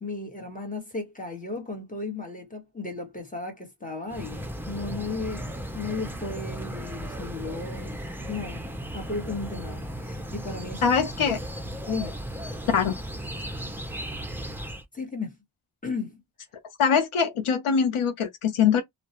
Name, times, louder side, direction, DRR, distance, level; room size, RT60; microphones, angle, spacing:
voice 1, 0.0-8.0 8.3-8.6 8.9-10.9 11.3-11.4 11.9-12.2 14.9-15.3 15.8-16.2, left 3 dB, 15° left, 1.0 m, -35 dB
sound 1, 4.1-14.8, right 1 dB, 5° right, 0.4 m, -36 dB
voice 2, 10.8-11.4 12.7-12.9 16.8-18.8, left 6 dB, 90° left, 0.6 m, -22 dB
2.3 x 2.1 x 2.8 m
wide cardioid pair, 85°, 49 cm